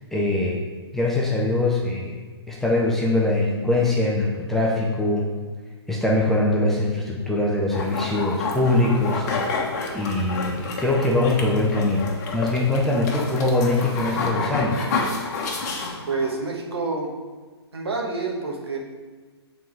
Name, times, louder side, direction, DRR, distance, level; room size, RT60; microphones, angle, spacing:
voice 1, 0.1-0.6 0.9-2.2 2.5-5.3 5.9-9.7 9.9-14.9, left 2 dB, ahead, -4 dB, 0.6 m, -22 dB
sound 1, 7.7-16.3, left 3 dB, 40° left, 1.2 m, -29 dB
voice 2, 16.1-17.1 17.7-18.8, right 3 dB, 65° right, 0 dB, 1.4 m, -27 dB
7.4 x 4.1 x 4.7 m, 1.4 s
figure-of-eight pair, 130°, 14 cm